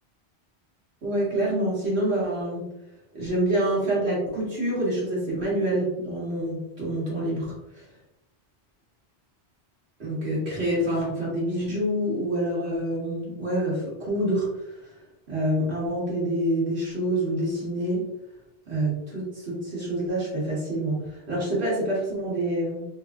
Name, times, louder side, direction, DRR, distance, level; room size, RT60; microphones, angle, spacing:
voice 1, 1.0-2.7 3.1-7.8 10.0-14.5 15.3-18.1 18.7-22.9, right 1 dB, 75° right, -6 dB, 2.0 m, -27 dB
4.2 x 3.1 x 2.4 m, 0.89 s
omnidirectional pair, 1.1 m